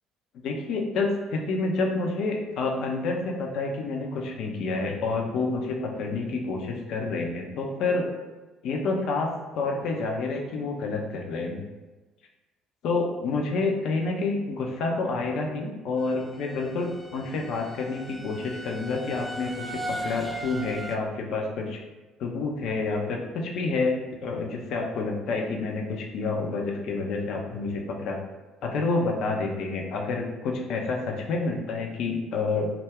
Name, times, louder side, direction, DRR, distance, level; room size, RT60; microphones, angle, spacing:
voice 1, 0.4-8.1 8.6-11.6 12.8-21.8 22.2-23.9 24.2-28.2 28.6-32.7, left 3 dB, 55° left, 1 dB, 0.4 m, -28 dB
sound 1, 16.0-21.0, right 1 dB, 5° right, 0.3 m, -38 dB
2.3 x 2.1 x 3.4 m, 1.2 s
figure-of-eight pair, 55°, 0 cm